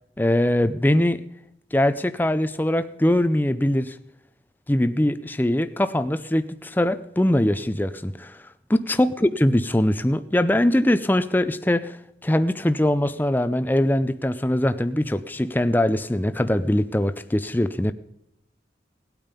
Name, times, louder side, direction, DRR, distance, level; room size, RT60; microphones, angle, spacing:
voice 1, 0.2-1.2 1.7-3.9 4.7-8.4 8.7-17.9, left 1 dB, 10° left, 12 dB, 0.5 m, -22 dB
18.0 x 8.9 x 5.2 m, 0.82 s
head